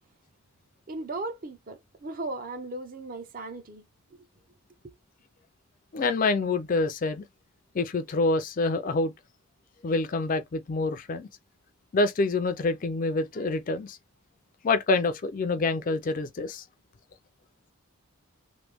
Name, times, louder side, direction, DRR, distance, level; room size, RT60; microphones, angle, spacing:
voice 1, 0.9-3.8 4.1-4.3 4.8-4.9, right 2 dB, 40° right, 0.5 m, -37 dB
voice 2, 5.9-7.2 7.7-9.1 9.8-11.3 11.9-14.0 14.6-16.6, left 3 dB, 40° left, 0.4 m, -26 dB
3.0 x 2.2 x 3.4 m
head